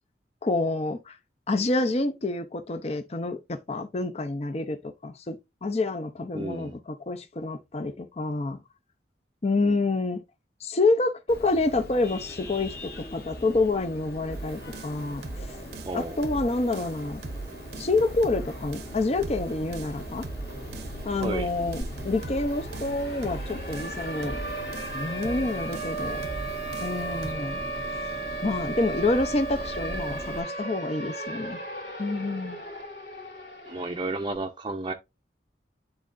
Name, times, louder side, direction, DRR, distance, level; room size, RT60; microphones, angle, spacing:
voice 1, 0.4-1.2 1.5-5.4 5.6-8.6 9.4-10.2 10.6-15.2 15.9-17.2 17.8-20.3 21.0-24.4 24.9-26.2 26.8-27.6 28.4-31.6 32.0-32.6, left 2 dB, 35° left, 0.6 m, -28 dB
voice 2, 6.3-6.8 9.6-9.7 15.9-16.2 21.2-21.5 33.7-34.9, right 2 dB, 25° right, 0.5 m, -32 dB
Vehicle horn car horn honking, 11.3-30.4, equal, 60° left, 1.9 m, -40 dB
sound 1, 14.3-27.3, right 3 dB, 65° right, 0.7 m, -40 dB
Siren, 21.8-21.9 22.2-34.2, right 2 dB, 90° left, 2.9 m, -35 dB
10.5 x 3.7 x 2.5 m
head